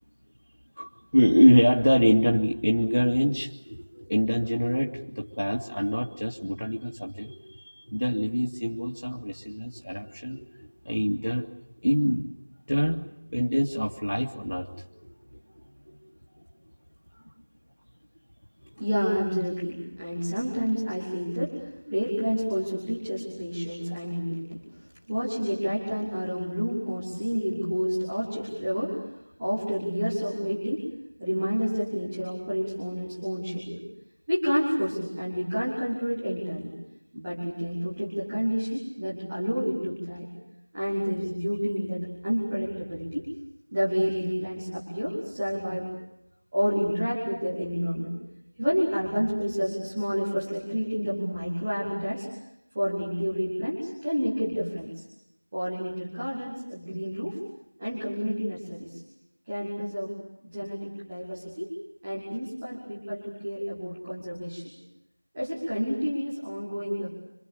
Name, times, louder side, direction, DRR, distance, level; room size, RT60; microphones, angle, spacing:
voice 1, 0.8-11.5 11.8-12.3 12.7-13.1 13.3-16.0 16.4-16.5, equal, 60° left, 0 dB, 2.5 m, -25 dB
voice 2, 18.8-29.0 29.4-30.9 31.2-33.8 34.3-36.7 37.1-40.3 40.7-43.3 43.7-45.9 46.5-48.1 48.6-52.2 52.7-55.0 55.5-57.4 57.8-59.0 59.5-60.1 60.4-61.7 62.0-64.7 65.3-67.1, equal, 5° right, -12 dB, 1.2 m, -29 dB
27.5 x 26.5 x 6.9 m, 0.86 s
figure-of-eight pair, 180°, 0 cm